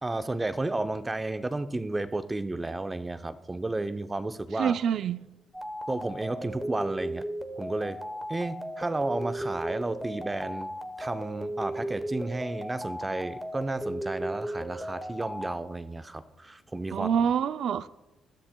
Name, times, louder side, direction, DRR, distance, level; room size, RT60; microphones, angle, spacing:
voice 1, 0.0-4.8 5.9-7.3 7.6-8.0 8.3-10.7 11.0-17.3, right 2 dB, 20° right, 0.6 m, -32 dB
voice 2, 4.6-5.3 16.9-17.9, right 8 dB, 70° right, 0.4 m, -26 dB
sound 1, 5.5-15.6, right 1 dB, 5° right, 1.0 m, -36 dB
20.5 x 13.0 x 2.2 m
cardioid pair, 90°, 0 cm